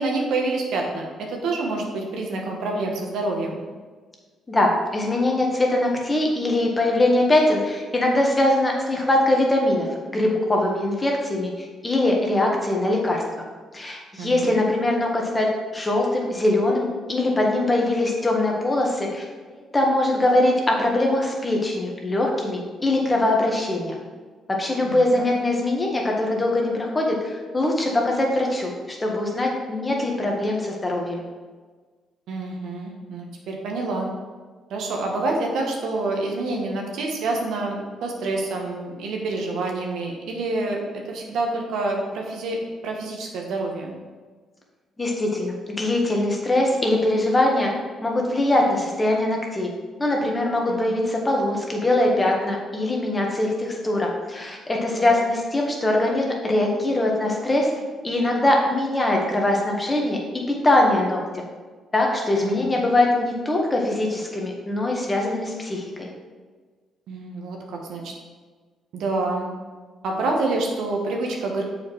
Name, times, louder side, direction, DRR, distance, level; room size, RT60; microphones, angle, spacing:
voice 1, 0.0-3.6 14.2-14.6 24.8-25.3 32.3-34.1 34.7-42.6 42.8-43.9 50.7-50.9 55.0-55.2 62.4-62.7 67.1-68.1 68.9-69.5 70.0-71.6, right 2 dB, 80° right, 0 dB, 1.3 m, -27 dB
voice 2, 4.5-9.9 10.1-11.5 11.8-13.2 13.7-19.2 19.5-24.0 24.6-31.2 45.0-47.7 48.0-49.7 50.0-57.7 58.0-60.2 60.5-61.4 61.9-66.1, left 1 dB, 20° left, 0 dB, 1.5 m, -22 dB
6.9 x 5.0 x 4.7 m, 1.4 s
cardioid pair, 90°, 0 cm